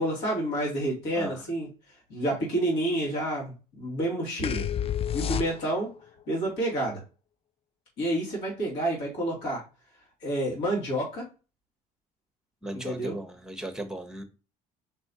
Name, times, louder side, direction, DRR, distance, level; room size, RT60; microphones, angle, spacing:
voice 1, 0.0-1.7 2.1-4.6 5.1-5.9 6.3-7.0 8.0-9.6 10.2-11.3 12.7-13.1, right 1 dB, 70° left, 2.6 m, -29 dB
sound 1, 4.4-6.0, left 9 dB, 30° left, 0.4 m, -29 dB
voice 2, 12.6-14.2, right 1 dB, 5° right, 1.1 m, -37 dB
5.3 x 3.4 x 2.8 m
hypercardioid pair, 60°, 18 cm